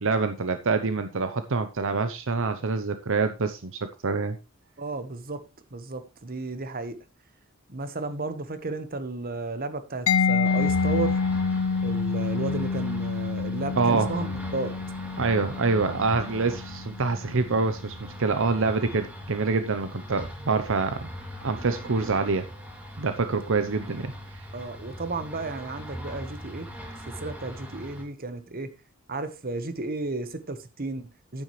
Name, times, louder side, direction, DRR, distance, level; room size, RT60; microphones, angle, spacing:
voice 1, 0.0-4.4 13.8-14.1 15.2-21.1 21.4-22.5 23.0-24.4, right 4 dB, 65° right, 0.8 m, -26 dB
voice 2, 4.8-5.4 5.7-7.0 7.7-11.2 11.8-14.7 24.5-26.7 27.2-28.7 29.1-31.4, right 3 dB, 45° right, 1.3 m, -33 dB
Mallet percussion, 10.1-17.6, left 5 dB, 70° left, 0.6 m, -28 dB
sound 1, 10.4-28.0, equal, 5° right, 2.7 m, -40 dB
10.5 x 9.9 x 3.2 m
head